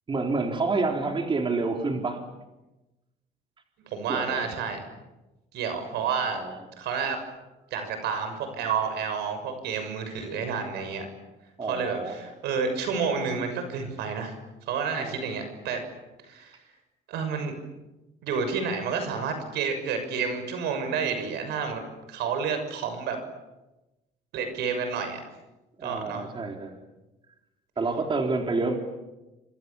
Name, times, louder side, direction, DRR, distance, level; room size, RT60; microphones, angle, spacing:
voice 1, 0.1-2.2 4.1-4.4 6.3-6.5 11.6-12.2 15.0-15.2 25.8-26.8 27.8-28.8, right 3 dB, 30° right, 3 dB, 4.0 m, -28 dB
voice 2, 3.8-4.9 5.5-6.4 6.8-7.2 7.7-11.1 11.6-14.4 14.7-15.8 16.2-16.6 17.1-17.5 18.2-21.8 22.1-23.2 24.3-25.2 25.8-26.3, right 6 dB, 80° right, 7 dB, 6.7 m, -30 dB
29.0 x 25.5 x 7.2 m, 1.0 s
cardioid pair, 110°, 17 cm